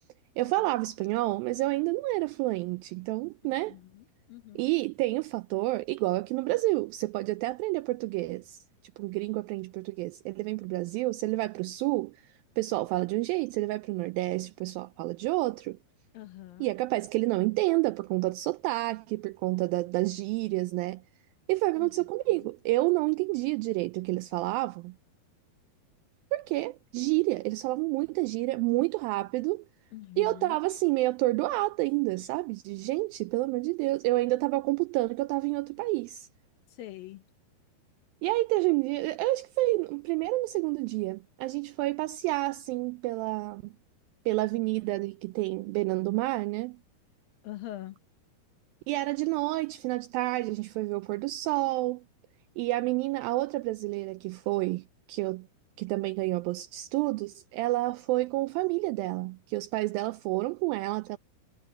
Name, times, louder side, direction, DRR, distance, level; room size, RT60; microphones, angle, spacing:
voice 1, 0.4-3.8 4.6-8.6 9.0-12.2 12.6-15.8 16.6-21.0 21.5-24.9 26.3-29.7 30.2-36.3 38.2-43.7 44.3-46.8 48.9-52.0 52.6-55.5 55.8-61.2, right 20 dB, 85° right, 2.1 m, -29 dB
voice 2, 3.7-4.6 16.1-16.7 21.8-21.9 29.9-30.6 36.7-37.2 47.4-48.0, left 15 dB, 70° left, 2.6 m, -43 dB
omnidirectional pair, 4.6 m